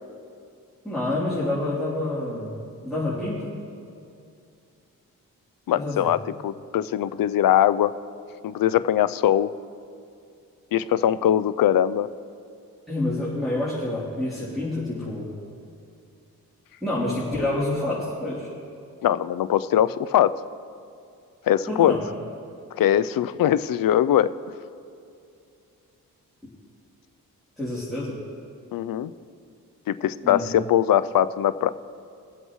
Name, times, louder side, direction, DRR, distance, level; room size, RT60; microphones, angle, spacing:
voice 1, 0.8-2.6 2.8-3.5 5.7-6.1 12.9-15.3 16.8-18.5 21.7-22.0 27.6-28.2 30.2-30.4, left 1 dB, ahead, -10 dB, 3.3 m, -28 dB
voice 2, 5.7-7.9 8.4-9.5 10.7-12.1 19.0-20.4 21.4-22.0 22.8-24.3 28.7-29.1 29.9-31.7, left 11 dB, 70° left, 15 dB, 0.5 m, -21 dB
23.5 x 7.8 x 3.1 m, 2.5 s
cardioid pair, 65°, 35 cm